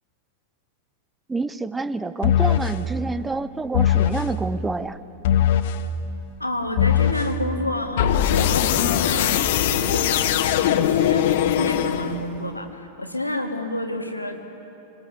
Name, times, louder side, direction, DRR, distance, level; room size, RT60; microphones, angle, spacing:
voice 1, 1.3-5.0, right 3 dB, 10° right, 15 dB, 0.7 m, -28 dB
sound 1, 2.2-2.8 3.7-4.3 5.2-5.8 6.8-7.3 8.0-12.4, left 10 dB, 55° left, 1.0 m, -20 dB
voice 2, 6.4-14.4, left 1 dB, 85° left, 6 dB, 1.8 m, -29 dB
25.5 x 19.5 x 8.2 m, 3.0 s
figure-of-eight pair, 90°, 0 cm